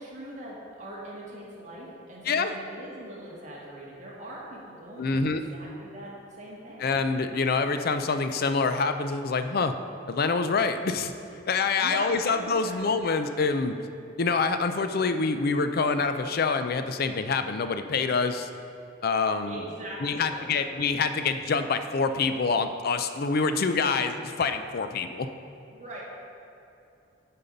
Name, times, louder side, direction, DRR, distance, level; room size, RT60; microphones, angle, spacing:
voice 1, 0.0-6.9 11.8-13.0 19.5-20.9 25.7-26.0, right 1 dB, 40° right, -4 dB, 1.7 m, -41 dB
voice 2, 5.0-5.5 6.8-9.7 10.1-11.1 11.5-13.8 14.2-18.5 19.0-19.6 20.0-25.3, left 4 dB, 50° left, 9 dB, 0.5 m, -26 dB
9.9 x 5.5 x 5.2 m, 2.7 s
head